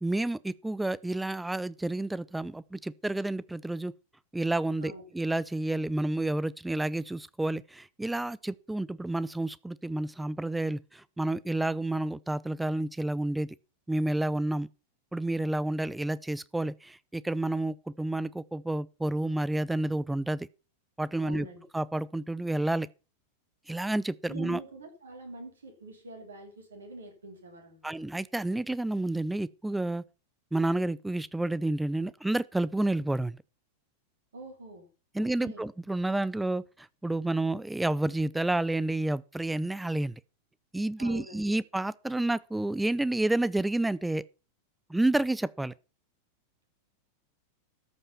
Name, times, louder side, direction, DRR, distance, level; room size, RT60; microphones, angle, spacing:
voice 1, 0.0-3.9 4.3-13.5 13.9-14.7 15.1-20.5 21.0-21.5 21.7-22.9 23.7-24.6 27.8-30.0 30.5-33.4 35.1-40.2 40.7-44.2 44.9-45.7, right 2 dB, 5° right, 0.4 m, -30 dB
voice 2, 21.2-21.6 24.3-27.9 34.3-34.9 35.2-35.6 41.0-41.5, right 2 dB, 70° right, 3.4 m, -46 dB
13.5 x 5.5 x 5.5 m
figure-of-eight pair, 90°, 0 cm